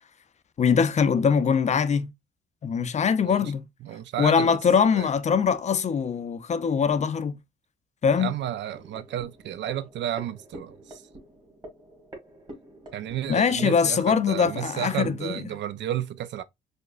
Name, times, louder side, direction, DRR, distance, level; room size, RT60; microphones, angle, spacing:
voice 1, 0.6-2.1 2.6-3.7 4.2-7.4 8.0-8.3 13.3-15.4, left 6 dB, 35° left, 0.4 m, -22 dB
voice 2, 3.2-3.5 3.8-4.6 4.9-5.1 8.2-11.0 12.9-16.4, right 11 dB, 65° right, 0.4 m, -32 dB
sound 1, 8.6-15.2, right 1 dB, 20° right, 1.5 m, -46 dB
4.9 x 2.1 x 2.4 m
cardioid pair, 90°, 20 cm